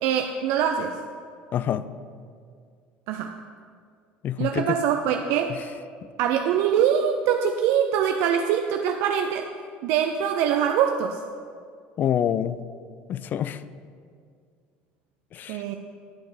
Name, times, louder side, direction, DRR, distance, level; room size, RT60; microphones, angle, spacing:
voice 1, 0.0-1.0 3.1-3.3 4.4-5.6 6.2-9.5 9.8-11.2 15.5-15.7, right 8 dB, 70° right, 5 dB, 0.4 m, -23 dB
voice 2, 1.5-1.8 4.2-4.8 12.0-12.6 13.1-13.6 15.3-15.6, left 10 dB, 45° left, 15 dB, 0.4 m, -26 dB
11.0 x 4.5 x 4.9 m, 2.1 s
supercardioid pair, 90°, 4 cm